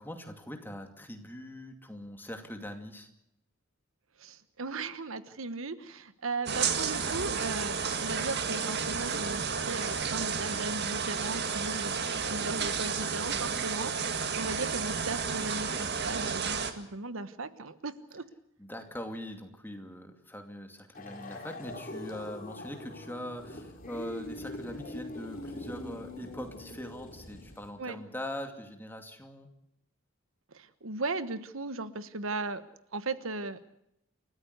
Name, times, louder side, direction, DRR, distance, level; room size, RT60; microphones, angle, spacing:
voice 1, 0.0-3.1 18.6-29.5, left 1 dB, 10° left, 5 dB, 2.5 m, -42 dB
voice 2, 4.2-11.9 12.2-18.2 27.8-28.0 30.5-32.6 32.9-33.7, right 3 dB, 70° right, 13 dB, 1.2 m, -37 dB
sound 1, 6.5-16.7, right 6 dB, 50° right, 1.9 m, -32 dB
sound 2, 20.9-27.7, left 1 dB, 40° left, 3.4 m, -43 dB
29.0 x 14.5 x 8.1 m, 0.79 s
head